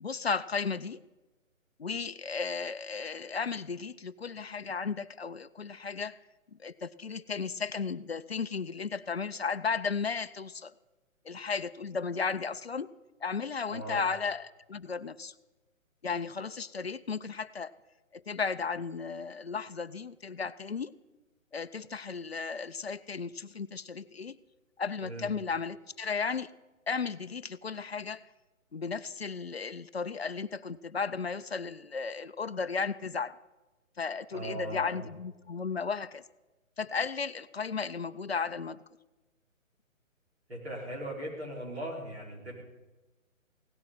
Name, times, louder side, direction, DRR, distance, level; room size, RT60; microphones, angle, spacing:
voice 1, 0.0-1.0 1.8-6.2 6.6-10.7 11.2-12.9 13.2-15.3 16.0-17.7 18.1-20.9 21.5-24.4 24.8-26.5 26.9-28.3 28.7-33.4 34.0-36.2 36.8-38.8, left 5 dB, 50° left, 14 dB, 0.4 m, -34 dB
voice 2, 13.7-14.0 25.0-25.3 34.3-35.0 40.5-42.5, right 1 dB, 50° right, -3 dB, 5.3 m, -38 dB
17.0 x 11.5 x 5.7 m, 1.1 s
hypercardioid pair, 180°, 40 cm